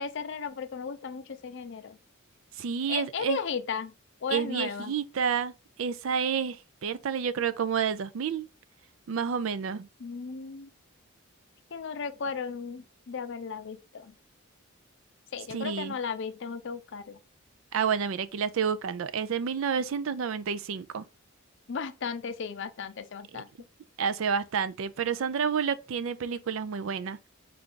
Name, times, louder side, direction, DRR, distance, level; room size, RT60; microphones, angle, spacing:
voice 1, 0.0-2.0 2.9-3.9 4.2-4.9 10.0-10.7 11.7-14.1 15.3-17.2 21.7-23.5, left 5 dB, 55° left, 0.5 m, -35 dB
voice 2, 2.6-3.4 4.3-5.5 5.8-8.5 9.1-9.9 15.5-16.0 17.7-21.0 23.3-23.4 24.0-27.2, right 6 dB, 65° right, 0.4 m, -29 dB
4.5 x 2.5 x 3.7 m
head